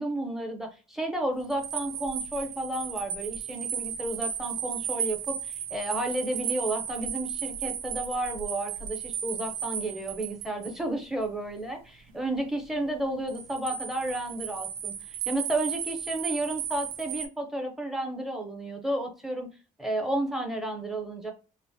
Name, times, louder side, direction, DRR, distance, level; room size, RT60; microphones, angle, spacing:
voice 1, 0.0-19.5 19.8-21.3, right 1 dB, ahead, 3 dB, 0.7 m, -32 dB
sound 1, 1.4-10.8 13.3-17.3, right 8 dB, 90° right, 0.4 m, -35 dB
2.8 x 2.1 x 2.6 m, 0.33 s
cardioid pair, 110°, 15 cm